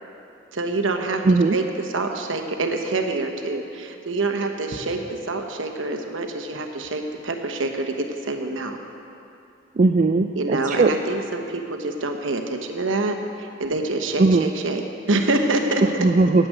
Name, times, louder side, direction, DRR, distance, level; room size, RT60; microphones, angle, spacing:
voice 1, 0.5-7.9 8.2-8.8 10.3-15.8, right 2 dB, 90° right, 4 dB, 1.1 m, -26 dB
voice 2, 1.2-1.6 9.8-10.9 14.2-14.5 16.0-16.5, right 3 dB, 40° right, 5 dB, 0.4 m, -18 dB
10.0 x 7.8 x 8.9 m, 2.7 s
head